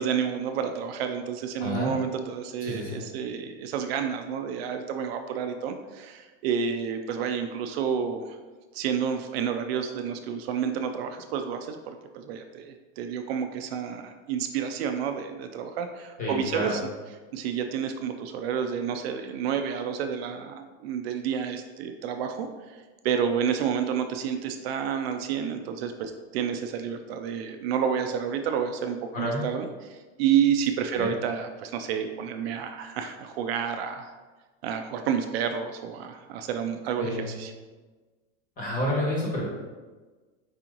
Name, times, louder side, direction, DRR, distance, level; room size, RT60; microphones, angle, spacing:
voice 1, 0.0-8.4 8.7-16.8 17.3-34.2 34.6-37.5, right 7 dB, 60° right, 7 dB, 0.5 m, -30 dB
voice 2, 1.6-1.9 2.6-3.0 16.2-16.8 29.1-29.4 30.9-31.1 37.0-37.3 38.6-39.4, left 1 dB, 25° left, -3 dB, 1.1 m, -29 dB
4.8 x 2.9 x 3.8 m, 1.3 s
supercardioid pair, 165°, 35 cm